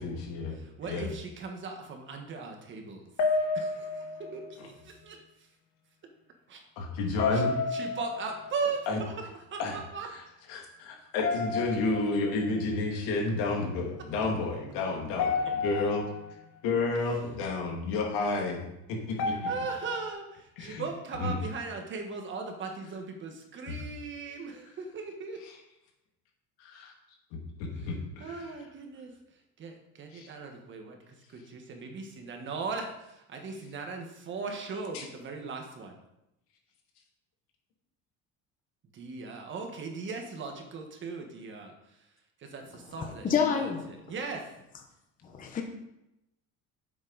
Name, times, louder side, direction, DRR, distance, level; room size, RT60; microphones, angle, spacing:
voice 1, 0.0-1.1 4.6-4.7 6.8-7.6 8.9-9.0 9.6-9.7 10.5-15.3 15.6-16.1 16.6-19.4 20.6-20.8 21.2-21.3 23.7-23.8 25.4-25.5 26.6-26.9 27.3-28.5 30.1-30.3 34.9-35.1, left 3 dB, 90° left, 1 dB, 2.5 m, -31 dB
voice 2, 0.6-3.1 3.5-5.5 6.5-6.6 7.1-7.4 7.7-10.1 15.4-15.5 19.5-25.4 27.8-27.9 28.2-29.1 29.6-36.0 38.9-42.0 42.4-44.5, right 4 dB, 35° right, 3 dB, 1.5 m, -39 dB
sound 1, 3.2-4.7 7.2-8.7 11.2-12.5 15.2-16.4 19.2-20.1, left 4 dB, 55° left, 1.2 m, -31 dB
voice 3, 43.2-43.9 45.3-45.6, left 7 dB, 25° left, 4 dB, 0.9 m, -27 dB
9.6 x 7.5 x 4.0 m, 0.88 s
cardioid pair, 165°, 35 cm